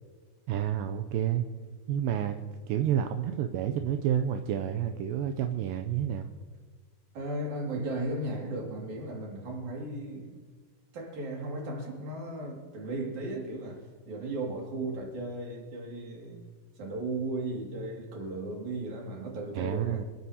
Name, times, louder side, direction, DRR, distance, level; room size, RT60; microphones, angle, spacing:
voice 1, 0.5-1.5 1.9-6.3 19.6-20.0, right 10 dB, 80° right, 2.1 m, -29 dB
voice 2, 7.1-10.4 10.9-16.4 16.8-20.0, right 2 dB, 55° right, 3.5 m, -36 dB
26.5 x 10.5 x 2.8 m
omnidirectional pair, 4.3 m